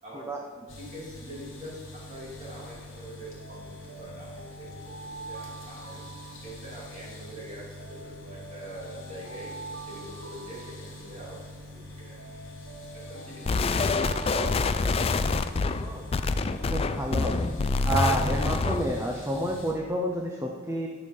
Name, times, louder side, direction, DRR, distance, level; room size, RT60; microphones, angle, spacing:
voice 1, 0.0-6.0 6.4-12.3 12.9-15.0, right 1 dB, 35° right, -5 dB, 3.0 m, -44 dB
sound 1, 0.7-19.7, left 1 dB, 75° left, 2.4 m, -45 dB
Alarm, 3.4-7.1 7.8-11.5 12.2-15.4, right 3 dB, 70° right, 1.1 m, -45 dB
sound 2, 13.5-18.9, left 3 dB, 30° left, 0.3 m, -26 dB
voice 2, 15.8-17.5 17.8-20.9, right 1 dB, 10° right, 0 dB, 0.7 m, -30 dB
11.0 x 6.1 x 5.4 m, 1.5 s
head